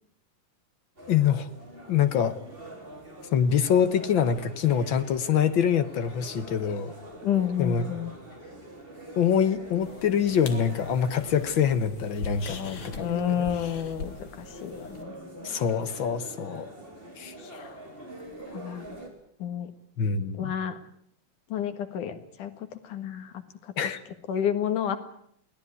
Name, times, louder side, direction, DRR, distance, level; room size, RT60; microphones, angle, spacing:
sound 1, 1.0-19.1, right 1 dB, 15° right, 4.4 m, -45 dB
voice 1, 1.1-1.5 1.9-2.4 3.3-6.9 7.6-7.9 9.2-13.3 15.4-16.7 17.2-17.3 20.0-20.5 23.8-24.0, left 8 dB, 60° left, 11 dB, 1.3 m, -25 dB
voice 2, 7.2-8.1 13.0-15.6 17.4-17.7 18.5-19.0 19.4-19.7 20.3-20.8 21.5-23.7 24.3-25.0, left 9 dB, 85° left, 9 dB, 3.3 m, -30 dB
sound 2, 9.8-15.0, left 5 dB, 45° left, 2.4 m, -42 dB
23.0 x 17.5 x 9.6 m, 0.66 s
omnidirectional pair, 3.5 m